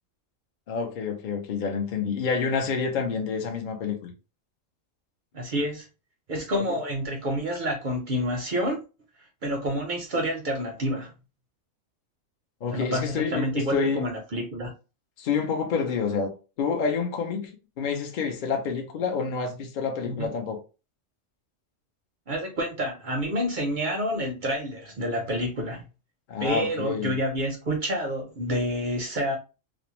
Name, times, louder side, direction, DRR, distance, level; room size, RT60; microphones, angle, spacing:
voice 1, 0.7-4.1 12.6-14.0 15.2-20.6 26.3-27.2, left 5 dB, 60° left, 0.5 m, -28 dB
voice 2, 5.3-5.9 6.3-8.8 9.4-11.1 12.7-14.7 20.0-20.3 22.3-25.9 26.4-29.4, equal, 60° right, 0.5 m, -28 dB
2.5 x 2.0 x 2.9 m
omnidirectional pair, 1.3 m